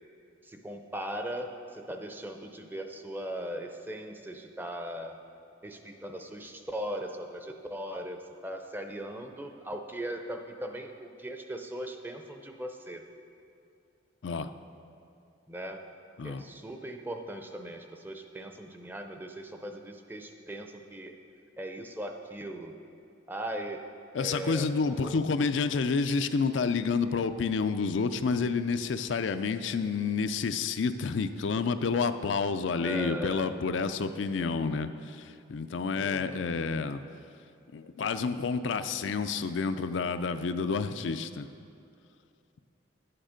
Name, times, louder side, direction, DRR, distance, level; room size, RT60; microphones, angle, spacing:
voice 1, 0.4-5.2 5.6-13.0 15.5-15.8 16.2-21.2 21.6-22.8 23.3-23.9 24.2-25.2 32.8-33.5 35.9-36.8, right 1 dB, 10° right, 5 dB, 0.6 m, -39 dB
voice 2, 24.1-37.0 37.7-41.5, left 5 dB, 70° left, 10 dB, 0.4 m, -29 dB
11.5 x 8.8 x 5.1 m, 2.5 s
head